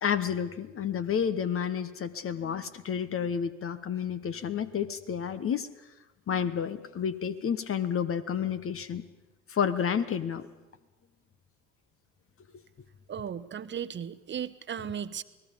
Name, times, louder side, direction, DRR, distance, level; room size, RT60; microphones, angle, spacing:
voice 1, 0.0-5.7 6.3-9.0 9.5-10.5, left 8 dB, 35° left, 11 dB, 1.2 m, -30 dB
voice 2, 13.1-15.2, right 8 dB, 30° right, 14 dB, 1.1 m, -36 dB
29.0 x 19.0 x 5.2 m, 1.1 s
hypercardioid pair, 65°, 38 cm